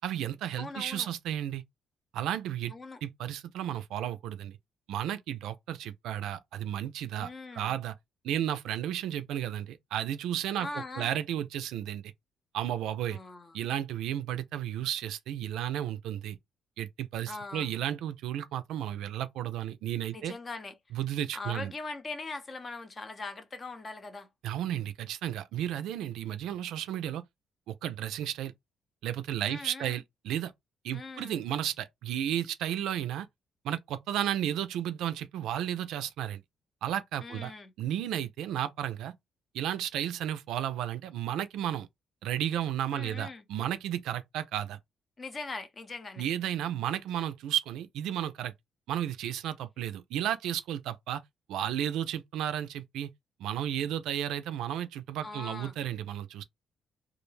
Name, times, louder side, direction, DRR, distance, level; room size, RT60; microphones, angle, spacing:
voice 1, 0.0-1.6 2.1-2.7 3.0-4.6 4.9-8.0 8.2-12.1 12.5-13.2 13.5-16.4 16.8-20.3 20.9-21.7 24.4-27.2 27.7-28.5 29.0-30.5 30.8-33.3 33.6-36.4 36.8-37.5 37.8-39.1 39.5-41.9 42.2-44.8 46.2-48.5 48.9-51.2 51.5-53.1 53.4-56.4, right 11 dB, 85° right, 0.3 m, -33 dB
voice 2, 0.6-1.1 2.7-3.0 7.2-7.8 10.6-11.2 13.1-13.6 17.3-17.7 20.1-20.8 21.3-24.3 29.5-30.0 30.9-31.4 37.2-37.7 42.9-43.4 45.2-46.2 55.2-55.9, left 3 dB, 35° left, 0.5 m, -41 dB
2.3 x 2.1 x 3.1 m
cardioid pair, 90°, 0 cm